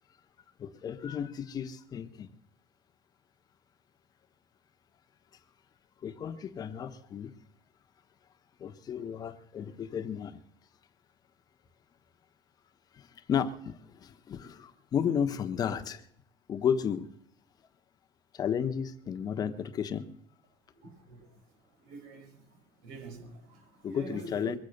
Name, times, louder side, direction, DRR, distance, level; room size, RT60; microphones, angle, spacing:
voice 1, 0.6-2.3 6.0-7.3 8.6-10.4 12.9-16.1 16.5-17.1 18.3-20.0 23.8-24.6, left 8 dB, 35° left, 8 dB, 1.2 m, -33 dB
voice 2, 20.8-21.2 21.9-22.3 22.8-24.5, right 3 dB, 90° right, 4 dB, 6.2 m, -45 dB
23.0 x 8.2 x 6.6 m, 0.69 s
cardioid pair, 135°, 12 cm